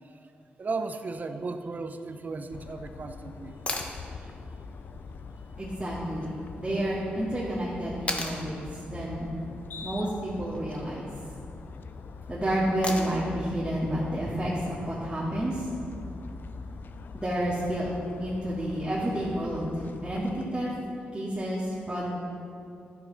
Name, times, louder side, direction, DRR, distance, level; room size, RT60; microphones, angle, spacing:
voice 1, 0.6-3.5 3.8-3.9 4.2-4.3, right 3 dB, 45° right, 8 dB, 0.7 m, -35 dB
sound 1, 2.5-20.5, left 4 dB, 60° left, 0.5 m, -43 dB
sound 2, 3.7-4.0 6.2-6.3 8.1-8.4 10.4-10.8 12.8-13.3 15.4-15.5, left 2 dB, 30° left, 1.2 m, -33 dB
voice 2, 5.6-6.3 6.6-9.3 9.8-11.1 12.3-15.7 17.1-17.9 18.2-20.7 21.1-22.1, right 1 dB, 20° right, -8 dB, 2.0 m, -30 dB
11.0 x 8.9 x 4.2 m, 2.6 s
cardioid pair, 65°, 4 cm